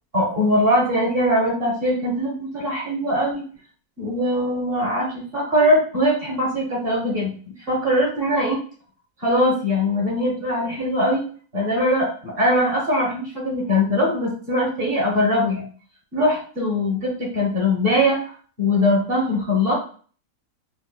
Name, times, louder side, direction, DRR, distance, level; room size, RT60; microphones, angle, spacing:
voice 1, 0.1-3.4 4.0-7.3 7.6-8.6 9.2-11.2 11.5-15.6 16.1-19.7, left 1 dB, 40° right, -2 dB, 1.2 m, -21 dB
4.6 x 2.4 x 2.2 m, 0.42 s
omnidirectional pair, 1.7 m